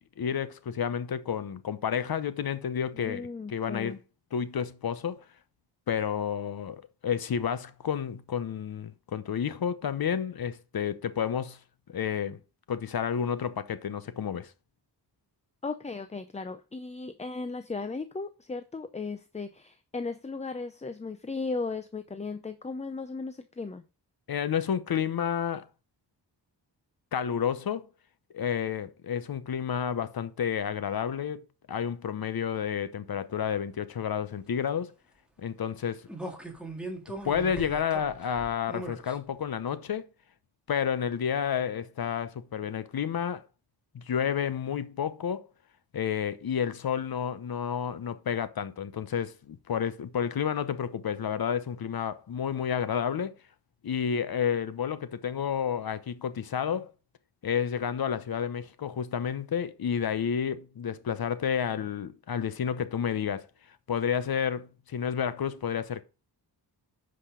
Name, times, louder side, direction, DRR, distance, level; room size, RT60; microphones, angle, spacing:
voice 1, 0.2-4.0 4.3-5.2 5.9-11.6 11.9-12.4 12.7-14.5 24.3-25.7 27.1-27.9 28.3-34.9 35.4-36.1 37.2-40.1 40.7-43.4 43.9-45.5 45.9-53.3 53.8-56.9 57.4-63.5 63.9-66.0, left 8 dB, 60° left, 0.9 m, -30 dB
voice 2, 2.9-4.0 15.6-23.8, left 4 dB, 15° left, 0.5 m, -36 dB
sound 1, 36.1-39.2 39.6-39.7, right 2 dB, ahead, 1.8 m, -39 dB
10.0 x 5.3 x 3.8 m
wide cardioid pair, 130°, 42 cm